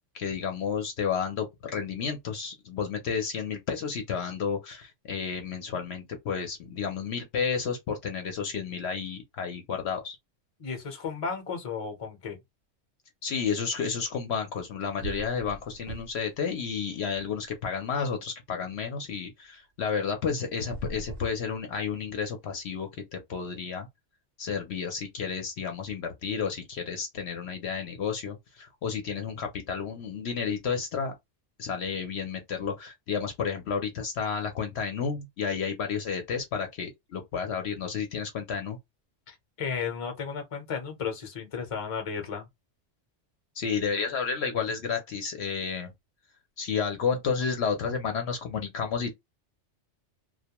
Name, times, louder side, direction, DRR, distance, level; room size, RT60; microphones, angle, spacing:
voice 1, 0.1-10.2 13.2-23.9 24.4-31.1 31.6-38.8 43.6-45.9 46.6-49.1, left 6 dB, 65° left, 0.8 m, -31 dB
voice 2, 10.6-12.4 39.3-42.5, left 6 dB, 35° left, 0.7 m, -34 dB
sound 1, 14.6-14.7 15.0-16.3 16.7-17.8 20.5-22.1, right 3 dB, 60° right, 0.8 m, -42 dB
2.3 x 2.1 x 2.8 m
omnidirectional pair, 1.3 m